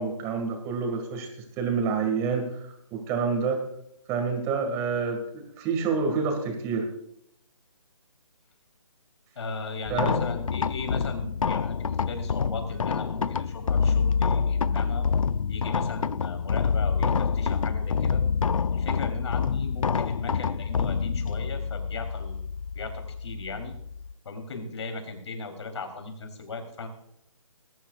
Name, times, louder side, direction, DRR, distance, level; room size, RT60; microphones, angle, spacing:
voice 1, 0.0-3.6 4.1-6.9 9.9-10.2, right 5 dB, 15° right, 4 dB, 2.1 m, -28 dB
voice 2, 9.4-15.0 15.5-18.2 18.7-22.4 22.7-23.7 24.3-26.9, left 3 dB, 55° left, 5 dB, 3.7 m, -37 dB
sound 1, 9.9-24.1, left 6 dB, 70° left, 0.6 m, -27 dB
21.0 x 11.0 x 2.5 m, 0.75 s
figure-of-eight pair, 155°, 18 cm